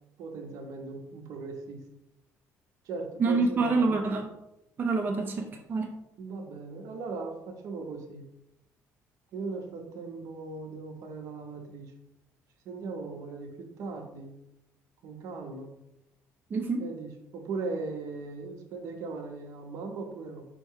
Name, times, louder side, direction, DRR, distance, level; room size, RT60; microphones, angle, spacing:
voice 1, 0.2-1.8 2.8-4.0 6.2-8.2 9.3-11.9 12.6-14.3 15.0-15.7 16.8-20.5, right 3 dB, 70° right, 4 dB, 0.8 m, -38 dB
voice 2, 3.2-4.3 4.8-5.9 16.5-16.9, right 3 dB, 35° right, 2 dB, 0.5 m, -27 dB
4.6 x 2.3 x 4.5 m, 0.85 s
cardioid pair, 120°, 6 cm